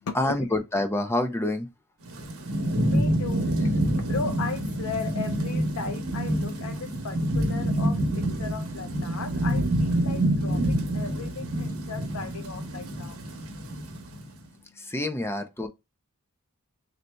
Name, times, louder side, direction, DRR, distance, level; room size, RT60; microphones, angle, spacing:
voice 1, 0.1-1.7 14.8-15.7, left 1 dB, 10° left, 0.6 m, -27 dB
Thunderstorm / Rain, 2.0-14.3, right 1 dB, 70° right, 0.9 m, -27 dB
voice 2, 2.3-3.7 4.0-13.2, left 5 dB, 70° left, 0.5 m, -37 dB
3.3 x 2.7 x 4.2 m
head